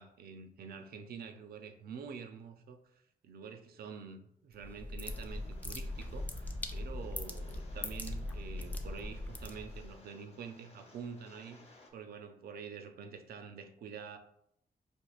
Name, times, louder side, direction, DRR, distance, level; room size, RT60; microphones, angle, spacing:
voice 1, 0.0-14.2, right 6 dB, 80° right, 7 dB, 0.4 m, -47 dB
sound 1, 4.5-9.9, left 1 dB, 10° left, 0.4 m, -40 dB
Rain, 5.0-11.9, left 2 dB, 40° left, 0.7 m, -60 dB
4.4 x 2.5 x 2.4 m, 0.75 s
cardioid pair, 105°, 15 cm